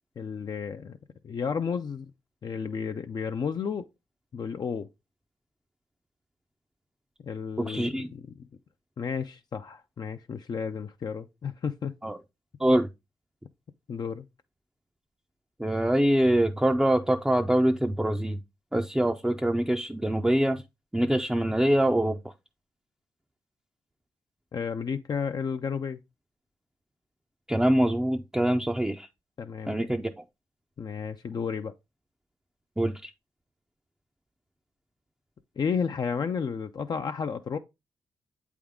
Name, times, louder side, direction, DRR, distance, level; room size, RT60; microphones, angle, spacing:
voice 1, 0.2-1.0 1.2-2.1 2.4-3.9 4.3-4.9 7.2-8.3 9.0-11.9 13.9-14.2 24.5-26.0 29.4-29.9 30.8-31.7 35.6-37.6, left 6 dB, 50° left, 0.5 m, -32 dB
voice 2, 7.6-8.1 12.0-12.2 12.6-12.9 15.6-18.4 18.7-20.6 20.9-22.2 27.5-29.1 29.7-30.1 32.8-33.1, right 1 dB, 5° right, 0.5 m, -24 dB
7.8 x 3.6 x 3.6 m
cardioid pair, 65°, 9 cm